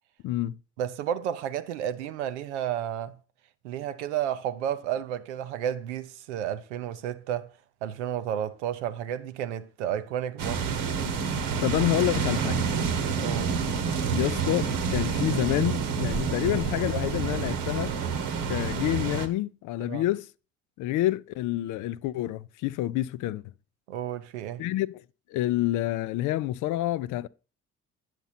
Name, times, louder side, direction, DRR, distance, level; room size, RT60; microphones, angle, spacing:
voice 1, 0.2-0.6 11.6-12.7 14.1-18.0 18.5-20.3 20.8-23.4 24.6-25.0 25.3-27.3, left 15 dB, 65° left, 0.4 m, -28 dB
voice 2, 0.8-3.2 3.6-7.5 7.8-10.7 13.2-13.6 19.9-20.0 23.9-24.7, right 10 dB, 90° right, 0.5 m, -32 dB
sound 1, 10.4-19.3, right 6 dB, 75° right, 1.0 m, -28 dB
9.0 x 5.9 x 4.1 m
hypercardioid pair, 45°, 34 cm